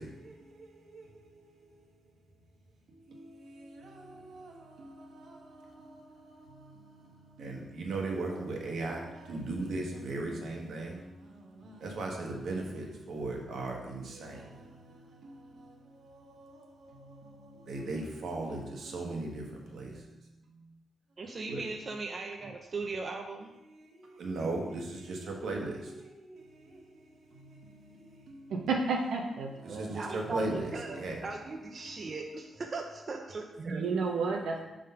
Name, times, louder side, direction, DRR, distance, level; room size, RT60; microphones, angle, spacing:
voice 1, 0.0-1.9 2.9-20.1 21.5-21.6 23.7-28.6 29.5-31.3, right 2 dB, 70° right, 0 dB, 1.2 m, -39 dB
voice 2, 21.2-23.5 29.9-33.9, right 3 dB, 40° right, 3 dB, 0.5 m, -38 dB
voice 3, 28.5-30.0 33.7-34.6, right 4 dB, 85° right, 1 dB, 0.7 m, -31 dB
5.1 x 3.8 x 5.6 m, 1.0 s
cardioid pair, 105°, 0 cm